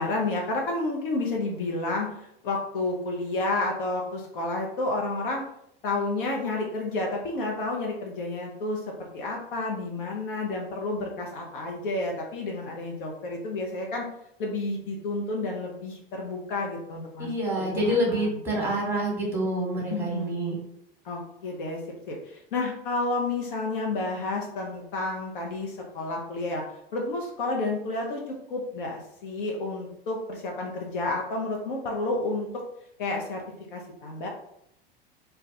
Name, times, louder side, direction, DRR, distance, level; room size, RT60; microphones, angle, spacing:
voice 1, 0.0-5.5 5.8-14.1 14.4-17.3 17.6-18.4 19.9-20.3 21.0-21.8 22.1-26.6 26.9-32.6 33.0-33.4 33.7-34.3, left 2 dB, 60° left, 0 dB, 0.5 m, -30 dB
voice 2, 17.2-20.6, right 1 dB, 10° right, -3 dB, 1.0 m, -27 dB
2.2 x 2.2 x 2.6 m, 0.75 s
figure-of-eight pair, 85°, 29 cm